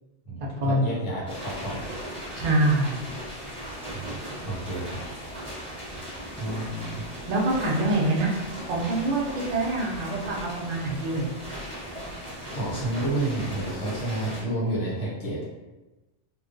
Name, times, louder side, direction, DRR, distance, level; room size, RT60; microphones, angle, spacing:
voice 1, 0.2-1.8 3.9-5.0 6.4-7.0 12.5-15.4, right 2 dB, 90° left, -6 dB, 1.2 m, -30 dB
sound 1, 1.3-14.4, equal, 5° left, 1.0 m, -38 dB
voice 2, 2.3-2.9 7.3-8.3 8.7-11.3, right 1 dB, 55° right, -2 dB, 0.4 m, -25 dB
2.3 x 2.2 x 2.5 m, 1.1 s
omnidirectional pair, 1.2 m